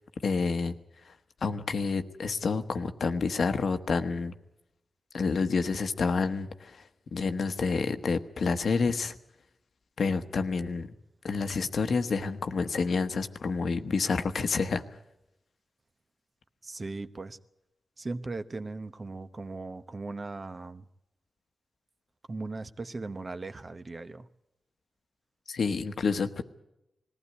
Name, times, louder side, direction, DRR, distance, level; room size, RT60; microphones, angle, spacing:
voice 1, 0.2-0.7 1.4-4.3 5.1-6.8 7.1-9.1 10.0-10.9 11.2-14.8 25.5-26.4, left 4 dB, 75° left, 9 dB, 1.1 m, -28 dB
voice 2, 16.6-17.4 18.0-20.9 22.3-24.3, right 3 dB, 40° right, 11 dB, 0.9 m, -38 dB
20.0 x 15.5 x 9.7 m, 0.88 s
cardioid pair, 65°, 0 cm